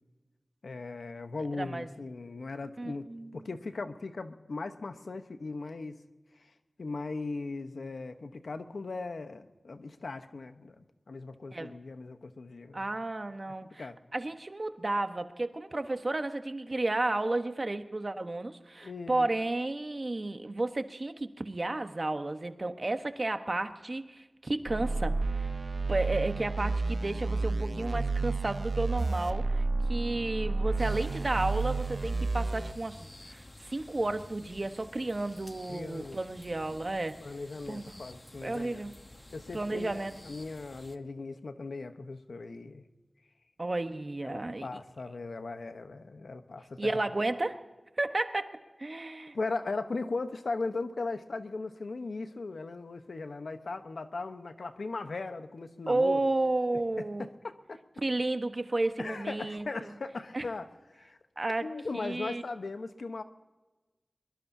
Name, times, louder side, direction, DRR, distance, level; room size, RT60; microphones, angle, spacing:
voice 1, 0.6-3.1 3.3-6.0 6.4-6.5 6.8-12.8 13.8-14.0 18.8-19.3 35.7-36.2 37.2-38.8 39.3-42.8 44.2-47.0 49.3-56.2 57.2-57.8 59.0-61.2 61.6-63.2, left 3 dB, 85° left, 8 dB, 1.0 m, -38 dB
voice 2, 1.5-1.9 2.8-3.5 11.5-11.7 12.7-25.5 25.9-37.2 37.7-38.0 38.4-38.9 39.5-40.1 43.6-44.7 46.8-47.6 48.0-49.3 55.9-57.3 58.0-59.9 60.3-60.4 61.4-61.7 61.9-62.4, right 2 dB, 50° right, 8 dB, 1.2 m, -32 dB
sound 1, 24.7-32.7, right 3 dB, 65° right, 0.7 m, -31 dB
sound 2, 30.8-41.0, left 1 dB, 30° left, 1.1 m, -50 dB
22.0 x 21.5 x 2.8 m, 1.2 s
cardioid pair, 40°, 0 cm